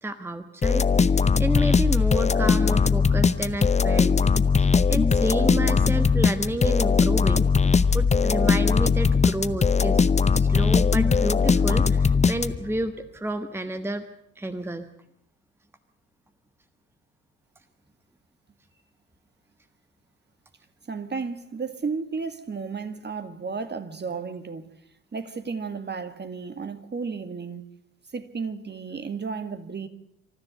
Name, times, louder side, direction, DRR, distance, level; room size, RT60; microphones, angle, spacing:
voice 1, 0.0-4.2 4.6-14.0 14.4-14.9, right 1 dB, 5° right, 1.3 m, -30 dB
sound 1, 0.6-12.8, left 5 dB, 15° left, 0.7 m, -20 dB
voice 2, 20.9-24.7 25.1-27.6 28.1-29.9, right 5 dB, 25° right, 1.9 m, -33 dB
26.5 x 14.0 x 8.1 m
figure-of-eight pair, 50°, 39 cm